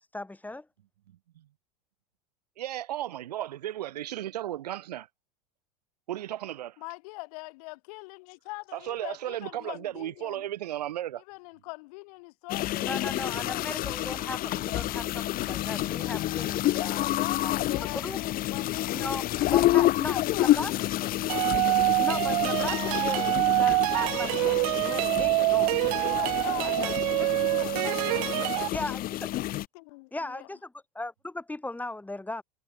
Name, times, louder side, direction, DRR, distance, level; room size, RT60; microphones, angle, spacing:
voice 1, 0.1-0.7 12.8-17.1 17.4-18.2 18.9-19.2 19.5-20.2 20.5-20.7 22.0-25.7 26.0-26.1 26.4-27.3 28.7-29.3 30.1-32.4, left 2 dB, 10° left, 5.2 m, -37 dB
voice 2, 2.6-5.1 6.1-6.8 8.7-11.2, right 13 dB, 85° right, 1.3 m, -35 dB
voice 3, 6.8-10.5 11.3-14.5 16.8-21.7 25.6-29.0 29.7-30.5, left 26 dB, 65° left, 5.7 m, -43 dB
sound 1, 12.5-29.7, left 15 dB, 45° left, 1.7 m, -29 dB
sound 2, 21.3-28.7, right 26 dB, 65° right, 0.9 m, -26 dB
hypercardioid pair, 90°, 20 cm